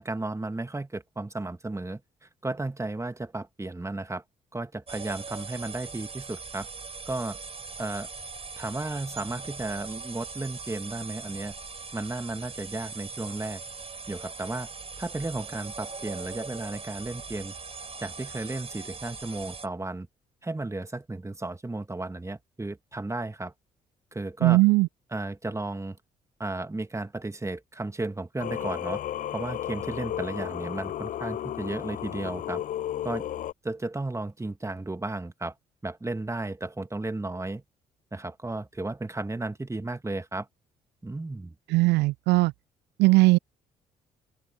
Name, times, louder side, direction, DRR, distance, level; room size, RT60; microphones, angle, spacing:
voice 1, 0.0-4.2 4.5-6.7 7.1-7.4 7.8-8.1 8.6-11.5 11.9-13.6 14.1-14.7 15.0-17.5 18.0-20.1 20.4-23.5 24.1-24.6 25.1-26.0 26.4-29.0 29.3-32.6 33.0-33.3 33.6-35.5 35.8-37.6 38.1-40.5 41.0-41.6, right 2 dB, 15° right, 2.0 m, -34 dB
sound 1, 4.9-19.7, right 4 dB, 30° right, 4.7 m, -40 dB
voice 2, 24.4-24.9 41.7-42.5 43.0-43.4, right 22 dB, 65° right, 0.4 m, -19 dB
Singing, 28.4-33.5, left 11 dB, 45° left, 0.4 m, -33 dB
open air
hypercardioid pair, 45°, 19 cm